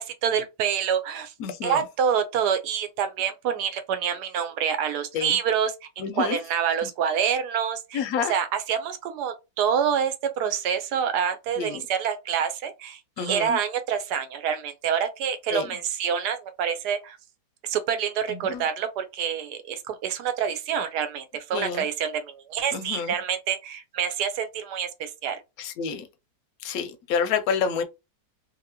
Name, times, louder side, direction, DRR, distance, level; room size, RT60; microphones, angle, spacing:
voice 1, 0.0-1.3 1.6-8.0 8.3-17.2 17.6-25.4, right 8 dB, 75° right, 1.1 m, -27 dB
voice 2, 1.4-1.8 5.1-5.4 6.0-6.4 7.9-8.3 11.6-11.8 13.2-13.6 15.5-15.7 18.3-18.6 21.5-21.9 22.7-23.2 25.6-26.1 26.6-27.8, left 6 dB, 70° left, 0.9 m, -28 dB
2.8 x 2.7 x 2.7 m
omnidirectional pair, 1.8 m